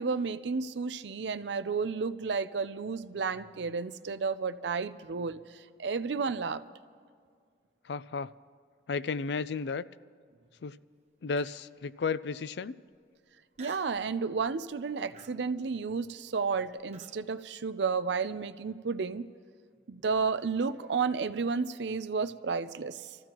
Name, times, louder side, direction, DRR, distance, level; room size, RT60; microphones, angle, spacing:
voice 1, 0.0-6.6 13.6-19.3 19.9-23.2, right 5 dB, 85° right, 13 dB, 0.5 m, -32 dB
voice 2, 7.9-8.3 8.9-9.8 10.6-10.8 11.2-12.8, left 4 dB, 75° left, 16 dB, 0.4 m, -33 dB
Human voice, 11.4-11.8 12.3-12.4 13.5-14.0 14.4-14.7 15.1-17.2, right 5 dB, 40° right, 1.0 m, -53 dB
27.0 x 15.0 x 3.0 m, 2.1 s
head